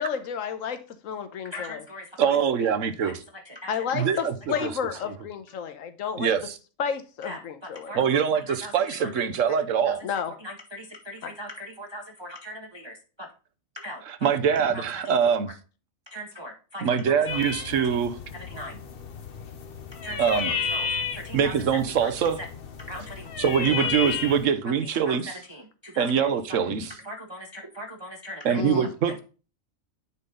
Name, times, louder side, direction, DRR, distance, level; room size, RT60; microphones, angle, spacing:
voice 1, 0.0-1.8 3.7-6.3 6.8-7.9 10.0-10.3 11.2-11.3 26.7-26.9 28.5-28.9, left 7 dB, 75° left, 1.3 m, -31 dB
voice 2, 1.4-2.7 3.0-3.1 3.4-4.1 4.5-4.7 7.2-9.2 9.8-10.0 10.4-13.3 13.7-14.4 14.7-15.3 16.1-17.0 17.3-17.4 18.3-18.8 20.0-20.4 20.7-21.5 21.9-22.1 22.4-22.5 22.8-23.3 23.8-23.9 24.8-26.7 27.0-28.6 29.1-29.2, equal, 20° right, 0.9 m, -40 dB
voice 3, 2.2-3.2 3.9-4.7 6.2-6.6 7.9-10.0 14.2-15.5 16.8-18.1 20.2-20.5 21.3-22.4 23.4-25.3 26.0-26.9 28.4-29.2, right 7 dB, 70° right, 1.2 m, -24 dB
sound 1, 17.3-24.4, left 6 dB, 50° left, 0.9 m, -33 dB
9.7 x 4.0 x 3.7 m
omnidirectional pair, 1.4 m